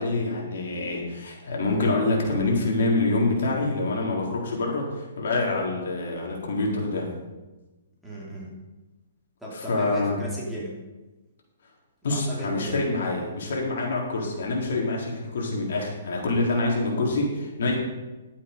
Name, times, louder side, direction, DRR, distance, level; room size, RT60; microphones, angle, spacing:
voice 1, 0.0-7.1 9.5-10.2 12.0-17.8, left 2 dB, 70° left, -1 dB, 3.7 m, -26 dB
voice 2, 8.0-8.5 9.4-10.8 12.1-12.8, right 1 dB, ahead, -7 dB, 2.7 m, -36 dB
11.5 x 8.5 x 5.3 m, 1.1 s
hypercardioid pair, 155°, 0 cm